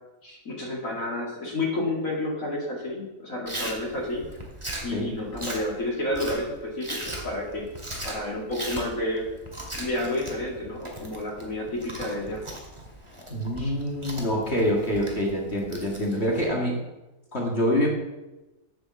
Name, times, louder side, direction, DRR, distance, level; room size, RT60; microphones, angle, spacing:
voice 1, 0.2-4.3 4.8-7.7 8.0-9.3 9.7-12.4 13.6-13.7, left 1 dB, 70° left, -4 dB, 3.0 m, -30 dB
Chewing mastication, 3.5-16.5, right 1 dB, 20° right, 2.1 m, -39 dB
voice 2, 13.3-16.8 17.3-17.9, equal, 50° left, -1 dB, 2.1 m, -26 dB
9.2 x 7.6 x 7.0 m, 1.0 s
omnidirectional pair, 1.5 m